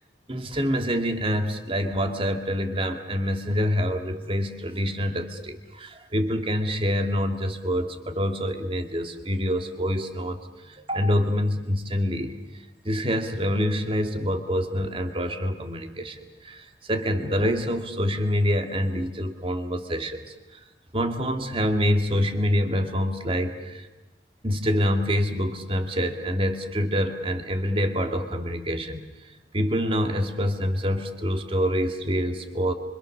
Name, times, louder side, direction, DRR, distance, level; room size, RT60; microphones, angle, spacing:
voice 1, 0.3-12.3 12.8-20.3 20.9-23.9 24.4-29.1 29.5-32.7, equal, 30° right, 6 dB, 2.0 m, -26 dB
26.0 x 25.5 x 6.6 m, 1.0 s
head